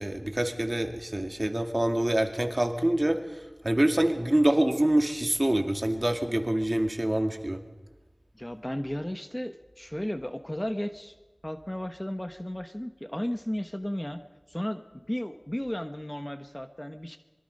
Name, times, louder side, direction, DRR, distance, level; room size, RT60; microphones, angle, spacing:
voice 1, 0.0-7.6, right 1 dB, 30° right, 5 dB, 2.4 m, -26 dB
voice 2, 8.4-11.2 11.4-14.2 14.5-17.2, equal, 15° left, 8 dB, 1.1 m, -34 dB
25.0 x 23.0 x 5.4 m, 1.1 s
wide cardioid pair, 50°, 0 cm